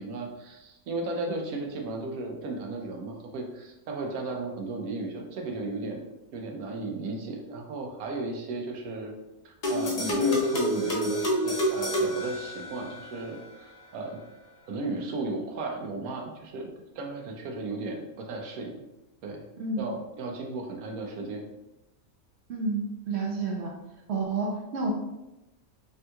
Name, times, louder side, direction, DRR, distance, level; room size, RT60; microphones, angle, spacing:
voice 1, 0.0-6.0 6.3-9.1 9.4-14.2 14.7-16.7 16.9-18.8 19.2-19.5 19.8-21.4, right 2 dB, 80° right, 2 dB, 1.0 m, -35 dB
sound 1, 9.6-13.1, equal, 75° left, 0.3 m, -28 dB
voice 2, 22.5-23.7 24.1-24.9, right 3 dB, 65° right, 0 dB, 0.7 m, -30 dB
3.5 x 2.8 x 2.2 m, 0.95 s
omnidirectional pair, 1.5 m